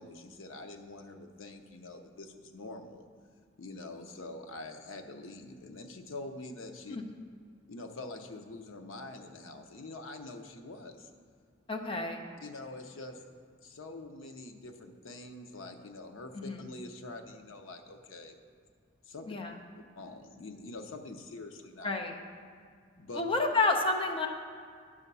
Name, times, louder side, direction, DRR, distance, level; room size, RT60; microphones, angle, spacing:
voice 1, 0.0-3.0 3.6-7.0 7.7-11.1 12.4-13.2 13.6-18.4 19.0-19.3 20.0-21.9 23.0-23.2, left 2 dB, 90° left, 5 dB, 0.7 m, -45 dB
voice 2, 11.7-12.2 16.4-16.6 19.3-19.5 21.8-22.2 23.1-24.3, left 3 dB, 25° left, 2 dB, 0.7 m, -29 dB
10.0 x 3.6 x 6.7 m, 2.1 s
head